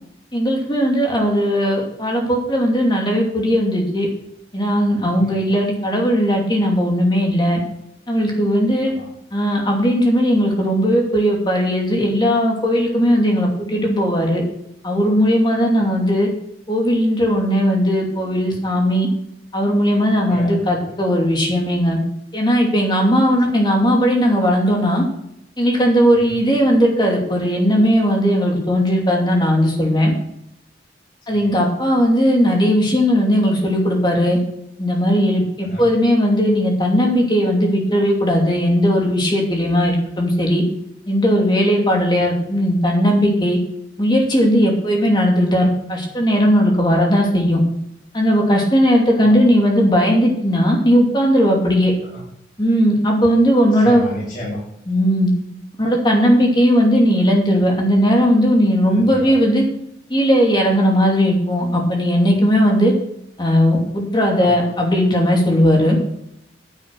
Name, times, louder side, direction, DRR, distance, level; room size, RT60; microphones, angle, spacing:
voice 1, 0.3-4.1 4.5-7.6 8.1-8.9 9.3-14.4 14.8-16.3 16.7-19.1 19.5-22.0 22.3-25.0 25.6-30.1 31.3-34.4 34.8-40.6 41.1-43.6 44.0-47.6 48.1-51.9 52.6-54.0 54.9-55.3 55.8-59.6 60.1-62.9 63.4-66.0, equal, 25° left, 0 dB, 2.7 m, -17 dB
voice 2, 20.3-20.9 23.3-23.4 26.1-26.4 31.3-31.5 35.6-35.9 42.2-42.3 49.1-49.4 52.1-52.2 53.8-54.6 58.9-59.3 64.4-64.7, left 1 dB, 45° left, -6 dB, 3.4 m, -33 dB
9.8 x 7.8 x 6.0 m, 0.76 s
head